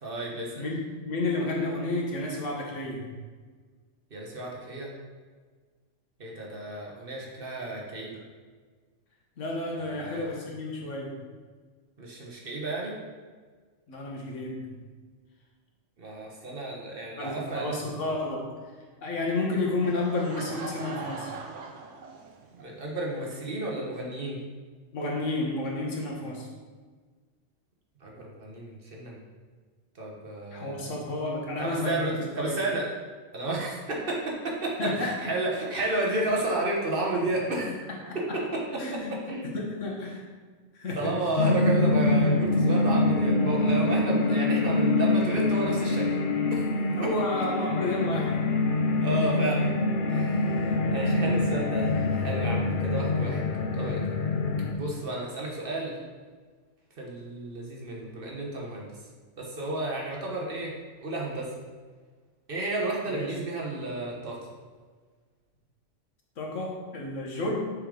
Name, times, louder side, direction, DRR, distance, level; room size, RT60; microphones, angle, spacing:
voice 1, 0.0-0.6 4.1-4.9 6.2-8.2 9.7-10.3 12.0-13.0 16.0-17.8 22.5-24.4 28.0-29.2 29.9-30.8 31.6-32.8 33.3-37.7 38.1-38.2 38.7-39.0 39.3-39.5 40.9-46.1 46.5-46.7 47.0-47.1 49.0-49.7 50.1-53.4 53.7-54.0 54.8-56.0 57.0-58.9 59.4-60.8 61.0-61.5 62.5-64.5, right 2 dB, 50° right, -2 dB, 1.3 m, -32 dB
voice 2, 1.0-3.1 9.4-11.2 13.9-14.8 17.2-18.5 19.0-21.4 24.9-26.5 30.5-32.6 34.8-35.3 38.0-38.2 38.8-39.1 39.4-40.2 40.7-41.2 47.0-48.4 63.1-63.3 66.4-67.7, left 2 dB, 85° left, -1 dB, 1.6 m, -31 dB
Laughter / Crowd, 19.8-22.7, right 4 dB, 85° right, 1.1 m, -40 dB
sound 1, 41.4-54.7, left 2 dB, 55° left, 0.6 m, -25 dB
6.3 x 5.0 x 3.8 m, 1.5 s
omnidirectional pair, 1.2 m